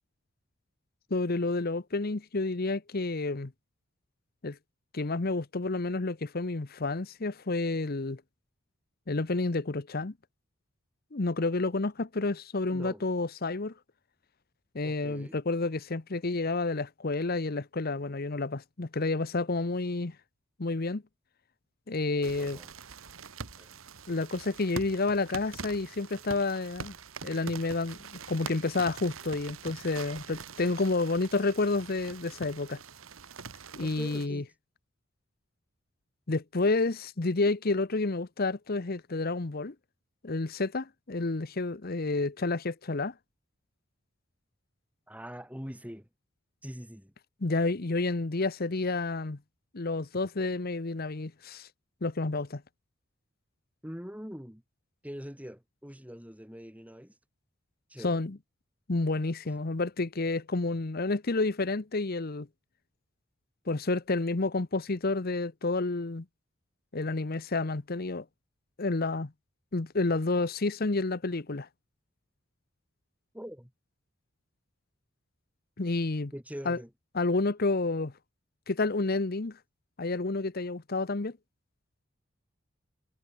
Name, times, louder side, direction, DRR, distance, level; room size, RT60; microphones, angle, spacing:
voice 1, 1.1-3.5 4.4-4.6 4.9-8.2 9.1-10.1 11.1-13.7 14.7-20.1 20.6-21.0 21.9-22.6 24.1-26.9 27.2-32.8 33.8-34.4 36.3-39.7 40.2-43.1 47.4-49.4 49.7-51.7 52.0-52.6 58.0-58.4 58.9-62.5 63.7-66.2 66.9-68.2 68.8-69.3 69.7-71.7 75.8-76.3 76.6-76.8 77.1-78.1 78.7-79.6 80.0-81.4, left 3 dB, 50° left, 0.9 m, -30 dB
voice 2, 12.7-13.0 14.8-15.4 22.2-22.7 23.6-23.7 33.8-34.5 45.1-46.1 46.6-47.1 53.8-54.6 55.0-57.1 57.9-58.2 73.3-73.7 76.3-76.9, equal, 5° right, 4.0 m, -43 dB
sound 1, 22.2-34.3, right 5 dB, 85° right, 1.7 m, -44 dB
head